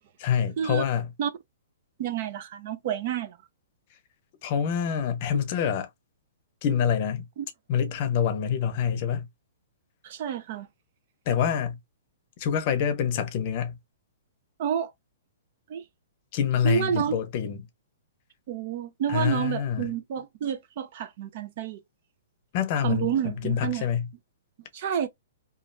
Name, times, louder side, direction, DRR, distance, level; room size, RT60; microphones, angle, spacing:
voice 1, 0.2-1.1 4.4-5.9 6.6-7.2 7.7-9.3 11.3-11.8 12.4-13.8 16.3-17.7 19.1-19.9 22.5-24.1, left 8 dB, 40° left, 0.7 m, -26 dB
voice 2, 2.0-3.4 5.3-5.4 7.4-7.5 10.0-10.7 14.6-14.9 15.7-15.8 16.6-17.1 18.5-21.8 22.8-23.9 24.7-25.1, right 9 dB, 45° right, 0.5 m, -29 dB
3.1 x 2.4 x 2.5 m
hypercardioid pair, 155°, 0 cm